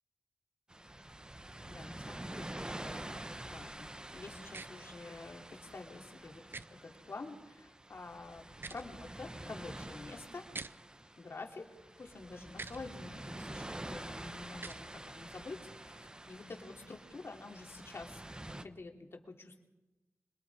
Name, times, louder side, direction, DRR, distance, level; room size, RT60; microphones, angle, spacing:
sound 1, 0.7-18.6, right 1 dB, 15° right, 1.1 m, -47 dB
voice 1, 1.7-3.1 3.4-6.4 6.8-10.4 11.2-11.7 12.0-19.6, left 3 dB, 60° left, 3 dB, 3.2 m, -48 dB
sound 2, 4.5-4.7 6.5-6.7 8.5-8.9 10.5-10.7 12.5-12.8 14.5-14.8, right 3 dB, 50° right, 0.7 m, -44 dB
26.0 x 22.5 x 4.9 m, 1.1 s
wide cardioid pair, 70°, 5 cm